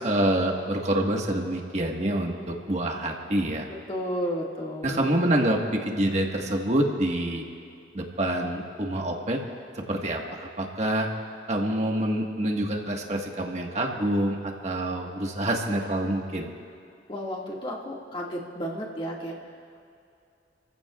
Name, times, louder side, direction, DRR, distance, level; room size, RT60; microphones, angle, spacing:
voice 1, 0.0-3.7 4.8-7.4 7.9-9.4 9.7-11.1 11.5-16.5, right 1 dB, 40° right, 1 dB, 1.6 m, -26 dB
voice 2, 3.9-5.1 17.1-19.4, equal, 30° left, -3 dB, 2.0 m, -32 dB
30.0 x 15.5 x 2.4 m, 2.6 s
head